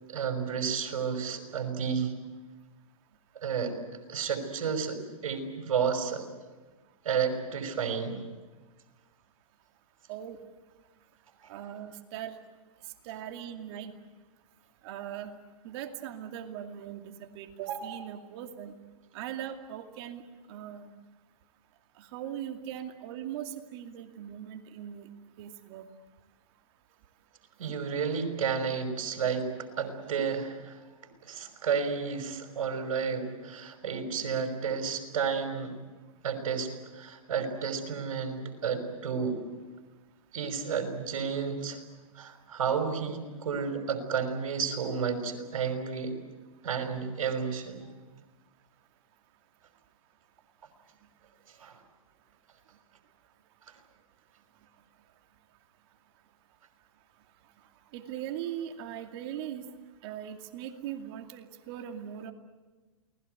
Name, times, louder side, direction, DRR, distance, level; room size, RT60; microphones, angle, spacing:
voice 1, 0.1-2.1 3.4-3.7 4.1-6.3 7.0-8.2 27.6-30.8 31.2-35.7 36.2-39.5 40.3-41.8 42.2-46.1 46.6-47.8 51.6-51.8, right 6 dB, 75° right, 6 dB, 5.6 m, -31 dB
voice 2, 11.5-12.4 13.0-13.9 14.8-15.3 15.6-18.7 19.1-20.2 20.5-20.9 22.0-25.1 25.4-25.9 57.9-59.6 60.0-62.3, right 10 dB, 45° right, 5 dB, 2.5 m, -39 dB
29.0 x 20.0 x 8.0 m, 1.3 s
hypercardioid pair, 130°, 18 cm